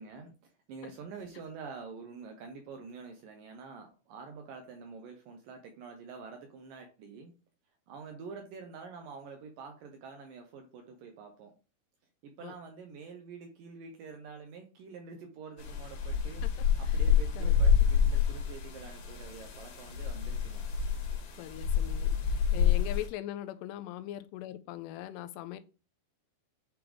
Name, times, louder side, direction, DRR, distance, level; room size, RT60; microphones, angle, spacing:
voice 1, 0.0-7.3 7.9-11.5 12.2-16.4 16.8-20.6 22.0-22.1, right 5 dB, 75° right, 4 dB, 2.1 m, -47 dB
sound 1, 15.6-23.1, left 7 dB, 70° left, 3.5 m, -28 dB
voice 2, 21.4-25.6, left 13 dB, 90° left, 12 dB, 2.7 m, -41 dB
9.4 x 3.4 x 3.4 m, 0.34 s
omnidirectional pair, 4.8 m